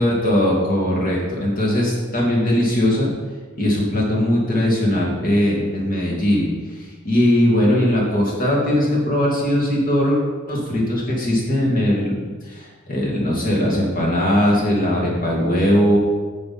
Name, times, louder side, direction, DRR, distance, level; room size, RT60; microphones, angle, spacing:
voice 1, 0.0-3.1 3.5-10.2 10.5-16.0, left 1 dB, 40° left, -4 dB, 2.5 m, -19 dB
9.4 x 6.7 x 4.4 m, 1.5 s
head